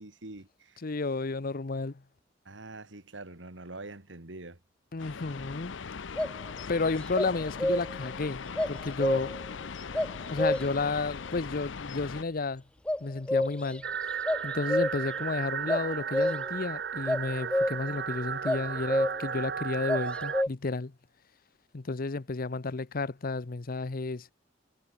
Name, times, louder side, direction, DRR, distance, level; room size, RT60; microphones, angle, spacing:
voice 1, 0.0-0.8 2.4-4.6, right 2 dB, 90° right, 2.7 m, -44 dB
voice 2, 0.8-2.0 4.9-5.8 6.7-9.4 10.3-12.6 13.0-13.9 14.4-20.9 21.7-24.3, left 3 dB, 50° left, 0.8 m, -32 dB
sound 1, 5.0-12.2, left 5 dB, 85° left, 0.7 m, -40 dB
sound 2, 6.2-6.4 7.1-8.1 8.6-9.5 9.9-10.9 12.9-13.8 14.1-15.2 15.7-16.6 17.1-18.0 18.5-19.4 19.9-20.5, left 1 dB, 5° left, 0.4 m, -29 dB
sound 3, 13.8-20.4, right 7 dB, 60° right, 1.1 m, -35 dB
head